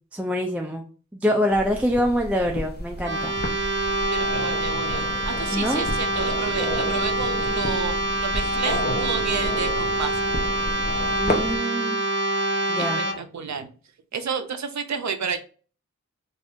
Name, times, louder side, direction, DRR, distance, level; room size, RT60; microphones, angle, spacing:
voice 1, 0.1-0.8 1.1-3.3 5.5-5.8 11.2-12.0 12.7-13.0, equal, 5° right, 1 dB, 0.4 m, -25 dB
sound 1, 1.5-11.6, left 1 dB, 30° left, 0.7 m, -32 dB
sound 2, 3.0-13.1, right 1 dB, 35° right, 0.8 m, -26 dB
voice 2, 4.1-10.1 12.7-13.7 14.1-15.4, right 5 dB, 65° right, 8 dB, 0.5 m, -31 dB
2.6 x 2.5 x 3.5 m, 0.39 s
wide cardioid pair, 75°, 31 cm